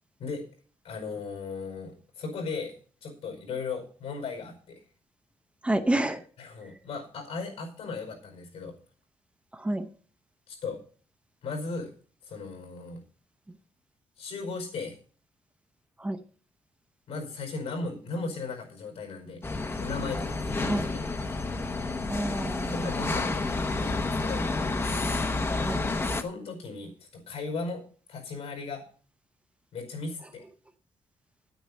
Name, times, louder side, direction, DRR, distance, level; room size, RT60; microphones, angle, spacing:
voice 1, 0.8-2.8 3.0-4.8 6.4-8.7 10.5-10.8 11.4-11.9 12.2-13.0 14.2-15.0 17.1-19.4 19.8-20.8 22.7-24.4 26.1-27.8 28.1-28.8 29.7-30.4, left 4 dB, 75° left, 4 dB, 5.0 m, -36 dB
voice 2, 5.6-6.2 9.5-9.9 16.0-16.2 20.6-20.9 22.1-22.9 25.6-25.8, right 1 dB, 10° right, 8 dB, 0.7 m, -29 dB
sound 1, 19.4-26.2, left 3 dB, 25° left, 0.9 m, -30 dB
10.0 x 9.3 x 5.5 m, 0.42 s
wide cardioid pair, 160°, 10 cm